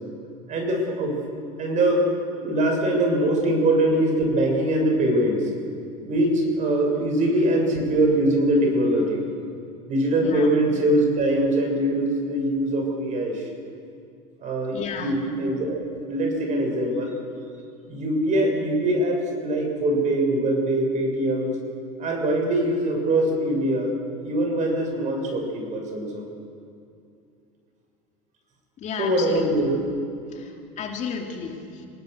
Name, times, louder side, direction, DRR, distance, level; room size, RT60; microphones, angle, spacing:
voice 1, 0.5-1.1 1.6-2.0 2.3-5.4 6.0-9.2 9.9-13.4 14.4-17.1 17.9-21.5 22.0-23.9 24.2-26.2 29.0-29.8, right 1 dB, 45° right, 2 dB, 6.5 m, -23 dB
voice 2, 14.7-15.2 28.8-29.5 30.3-31.9, left 6 dB, 40° left, 2 dB, 2.8 m, -33 dB
25.5 x 18.5 x 6.7 m, 2.5 s
supercardioid pair, 110°, 18 cm